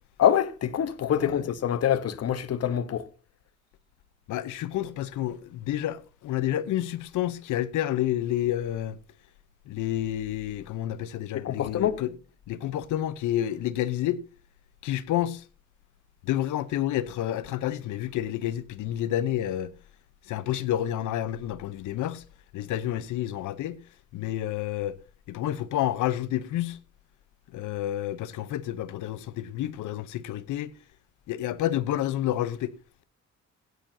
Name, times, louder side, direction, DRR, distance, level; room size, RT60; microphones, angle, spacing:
voice 1, 0.2-3.0 11.3-12.0, left 10 dB, 55° left, 1.0 m, -25 dB
voice 2, 4.3-9.0 9.7-12.1 12.5-14.2 14.8-15.4 16.2-19.7 20.3-22.2 22.5-23.8 24.1-25.0 25.3-26.8 27.5-30.7 31.3-32.7, left 12 dB, 80° left, 0.8 m, -29 dB
16.5 x 9.3 x 2.7 m
cardioid pair, 90°, 30 cm